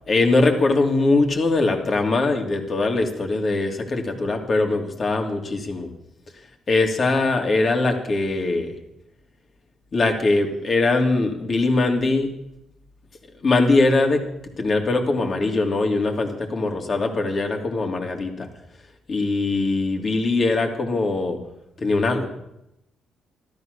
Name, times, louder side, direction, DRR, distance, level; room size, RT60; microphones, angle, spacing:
voice 1, 0.1-5.9 6.7-8.8 9.9-12.3 13.4-14.2 14.6-18.5 19.1-21.4 21.8-22.3, left 3 dB, 40° left, 3 dB, 2.8 m, -21 dB
14.0 x 13.5 x 6.7 m, 0.85 s
cardioid pair, 90°, 0 cm